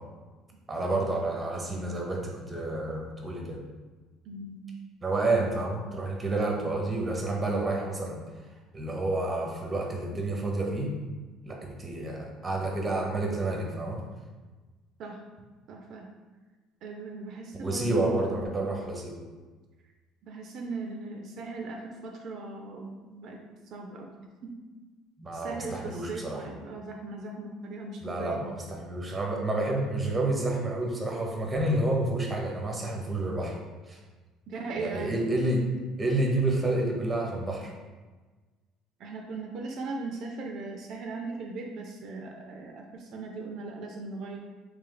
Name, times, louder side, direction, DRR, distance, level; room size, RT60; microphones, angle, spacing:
voice 1, 0.7-3.6 5.0-8.2 8.7-10.9 11.4-14.0 17.6-19.2 25.2-26.4 28.0-33.6 33.9-34.0 34.8-35.6 36.0-37.7, right 2 dB, 15° right, 0 dB, 0.7 m, -29 dB
voice 2, 4.2-4.6 15.0-15.2 15.7-16.1 16.8-18.4 20.3-23.4 23.7-24.1 24.4-24.5 25.3-28.5 34.5-35.1 39.0-44.4, right 3 dB, 50° right, 2 dB, 0.4 m, -38 dB
3.3 x 3.1 x 3.8 m, 1.3 s
cardioid pair, 145°, 0 cm